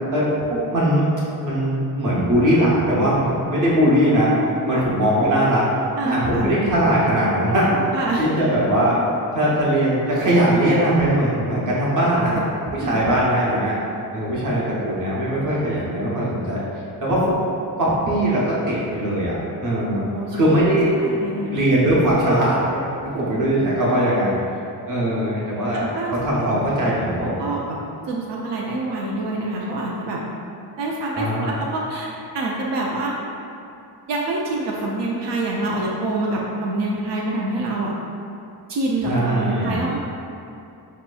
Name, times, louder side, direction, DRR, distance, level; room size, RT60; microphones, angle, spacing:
voice 1, 0.1-1.1 1.4-4.3 4.6-5.7 6.0-7.7 8.2-9.0 9.3-12.5 12.7-13.7 14.1-16.6 17.0-17.3 17.8-19.3 19.6-20.0 20.3-20.9 21.5-24.3 24.9-25.9 26.2-27.5 31.2-31.5 39.0-39.8, right 1 dB, 50° right, -6 dB, 0.9 m, -20 dB
sound 1, 3.3-9.2, left 1 dB, 15° left, 0.4 m, -36 dB
voice 2, 6.0-6.4 7.9-8.3 12.8-13.0 20.0-20.5 21.0-21.7 25.7-26.2 26.4-26.8 27.2-27.8 28.0-30.2 30.8-33.1 34.1-37.9 38.7-40.0, right 2 dB, 90° right, -3 dB, 0.6 m, -26 dB
5.0 x 2.9 x 2.3 m, 2.7 s
wide cardioid pair, 165°, 41 cm